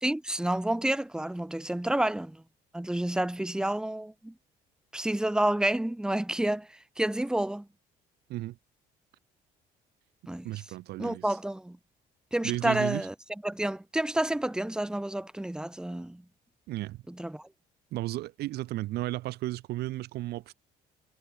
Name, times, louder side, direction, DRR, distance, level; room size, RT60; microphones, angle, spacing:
voice 1, 0.0-2.4 2.7-4.3 4.9-6.7 7.0-7.7 10.3-10.5 11.0-11.8 12.3-13.1 13.4-16.2 17.1-17.4, right 1 dB, 5° right, 1.2 m, -29 dB
voice 2, 10.4-11.4 12.4-13.1 16.7-17.0 17.9-20.5, right 17 dB, 75° right, 0.7 m, -34 dB
cardioid pair, 110°, 17 cm